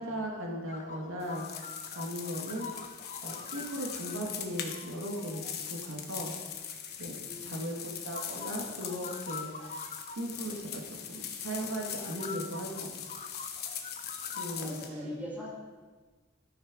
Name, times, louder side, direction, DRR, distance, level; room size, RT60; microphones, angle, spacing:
voice 1, 0.0-1.5 1.9-2.7 3.2-5.4 5.7-6.3 7.0-9.8 10.2-12.9 14.3-15.1, equal, 90° right, 0 dB, 1.7 m, -38 dB
sound 1, 0.7-5.9 6.6-7.6 8.0-10.2 10.7-10.8 11.3-11.4 12.0-14.7, left 5 dB, 35° left, 0.6 m, -45 dB
sound 2, 1.2-14.9, left 8 dB, 55° left, 1.0 m, -41 dB
voice 2, 7.2-7.9 14.6-15.5, equal, 10° right, -7 dB, 2.9 m, -41 dB
13.0 x 6.5 x 5.0 m, 1.3 s
head